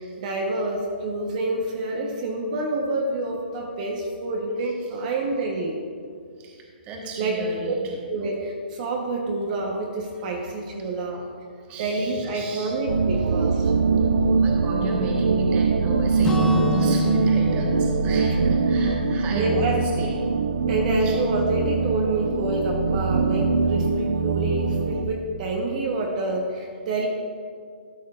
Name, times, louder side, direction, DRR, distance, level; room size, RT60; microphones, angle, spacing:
voice 1, 0.0-5.8 7.2-7.7 8.1-11.2 11.8-13.7 17.6-17.8 18.3-18.5 19.3-19.8 20.7-27.1, right 2 dB, 45° right, 0 dB, 1.1 m, -27 dB
voice 2, 6.4-8.0 10.2-10.3 11.1-11.2 11.7-12.7 13.6-20.2 21.0-21.2, right 2 dB, 25° right, 0 dB, 1.3 m, -33 dB
sound 1, 12.9-25.0, right 4 dB, 80° right, 0.4 m, -22 dB
Acoustic guitar / Strum, 16.2-20.2, left 2 dB, 10° left, 0.7 m, -30 dB
13.0 x 7.2 x 2.4 m, 2.1 s
hypercardioid pair, 140°, 6 cm